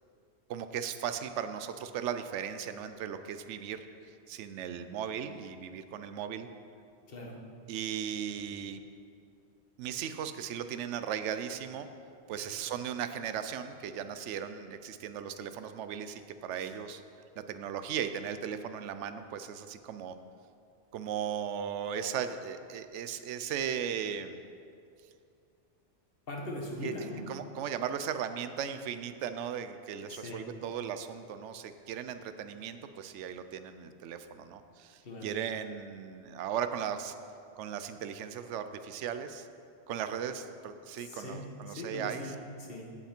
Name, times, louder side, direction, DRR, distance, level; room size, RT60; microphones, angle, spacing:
voice 1, 0.5-6.5 7.7-8.8 9.8-11.9 12.3-17.0 17.4-20.2 20.9-24.4 26.8-26.9 27.3-37.1 37.6-39.5 39.9-42.2, right 8 dB, 85° right, 10 dB, 0.9 m, -37 dB
voice 2, 26.3-27.3 30.1-30.5 35.0-35.3 41.0-42.8, left 1 dB, 55° left, 0 dB, 1.5 m, -40 dB
15.5 x 5.7 x 4.4 m, 2.5 s
omnidirectional pair, 1.2 m